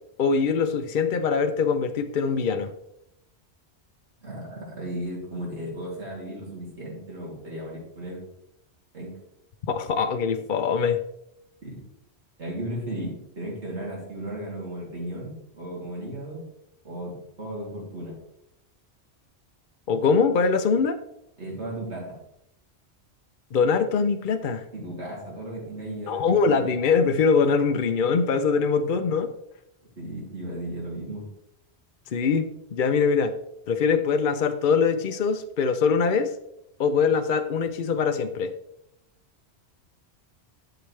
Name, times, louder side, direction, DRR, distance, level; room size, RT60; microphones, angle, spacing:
voice 1, 0.2-2.7 9.7-11.0 19.9-21.0 23.5-24.6 26.1-29.3 32.1-33.3 33.7-36.3 36.8-38.5, left 5 dB, 55° left, 7 dB, 0.7 m, -23 dB
voice 2, 4.2-8.3 8.9-9.2 11.6-11.8 12.4-16.4 16.8-18.1 21.4-22.2 24.7-26.3 30.0-31.2, right 1 dB, 90° right, -4 dB, 3.2 m, -35 dB
11.5 x 6.9 x 3.2 m, 0.79 s
omnidirectional pair, 1.1 m